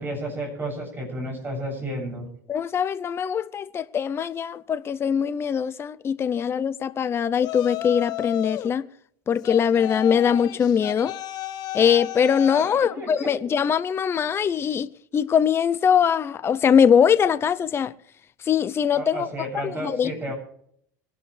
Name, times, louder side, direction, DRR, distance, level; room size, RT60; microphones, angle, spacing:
voice 1, 0.0-2.3 12.6-12.7 12.9-13.4 18.9-20.3, right 1 dB, 20° right, 7.6 m, -32 dB
voice 2, 2.5-8.9 9.3-11.1 11.7-17.9 18.4-19.3 19.5-20.1, left 7 dB, 25° left, 0.7 m, -22 dB
Yell, 7.4-8.7 9.4-12.8, left 14 dB, 45° left, 1.1 m, -33 dB
25.0 x 11.5 x 3.4 m
supercardioid pair, 115°, 9 cm